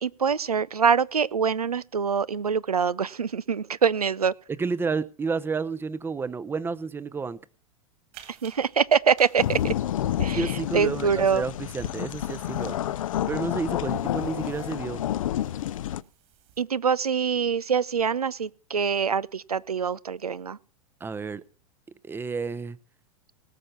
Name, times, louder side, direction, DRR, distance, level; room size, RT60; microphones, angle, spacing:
voice 1, 0.0-4.3 8.4-9.7 10.2-11.4 16.6-20.6, right 6 dB, 90° right, 0.5 m, -24 dB
voice 2, 4.6-7.4 10.3-12.8 13.3-15.0 21.0-21.4 22.0-22.8, right 4 dB, 10° right, 0.6 m, -30 dB
sound 1, 8.1-16.6, right 12 dB, 45° right, 2.4 m, -55 dB
sound 2, 9.4-16.0, left 12 dB, 65° left, 0.5 m, -29 dB
18.5 x 6.4 x 5.7 m
figure-of-eight pair, 95°, 19 cm